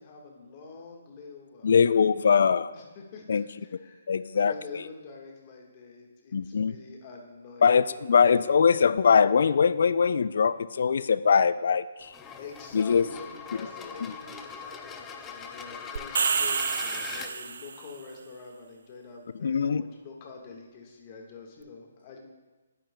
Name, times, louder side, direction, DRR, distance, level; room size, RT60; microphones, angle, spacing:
voice 1, 0.0-1.7 2.7-7.8 8.1-8.5 12.4-22.2, left 4 dB, 35° left, 1 dB, 1.4 m, -46 dB
voice 2, 1.6-2.7 3.3-3.4 4.1-4.8 6.3-6.7 7.6-12.1 12.7-13.1 19.4-19.8, left 6 dB, 65° left, 16 dB, 0.3 m, -22 dB
sound 1, 12.0-17.3, left 6 dB, 15° left, 0.5 m, -41 dB
sound 2, 16.0-17.9, right 6 dB, 65° right, 0.3 m, -28 dB
10.0 x 8.9 x 2.2 m, 1.2 s
hypercardioid pair, 145°, 0 cm